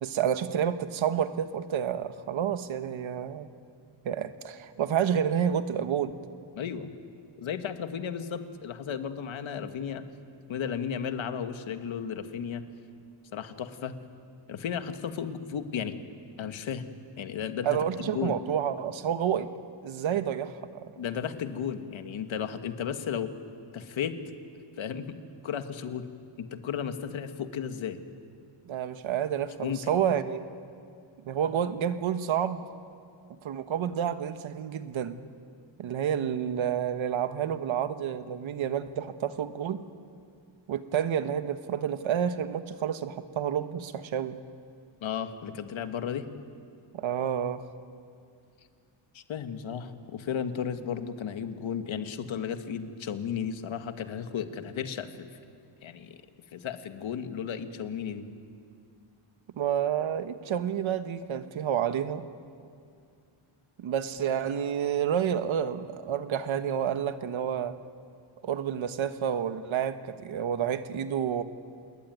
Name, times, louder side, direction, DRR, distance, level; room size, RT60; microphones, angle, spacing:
voice 1, 0.0-3.5 4.0-6.1 17.6-19.5 19.8-20.8 28.7-30.4 31.2-32.7 33.4-35.2 35.8-39.8 40.7-44.4 46.9-47.7 59.5-62.2 63.8-67.7 68.4-71.4, right 9 dB, 70° right, 10 dB, 1.4 m, -29 dB
voice 2, 6.5-6.9 7.4-10.1 10.5-12.6 13.3-14.0 14.5-16.0 16.4-16.9 17.2-18.3 21.0-23.3 23.7-24.2 24.8-25.2 25.4-26.1 26.4-28.0 29.6-29.8 45.0-46.3 49.1-55.3 55.8-56.2 56.5-58.3, left 7 dB, 70° left, 8 dB, 1.8 m, -34 dB
27.5 x 21.5 x 9.5 m, 2.3 s
wide cardioid pair, 165°, 49 cm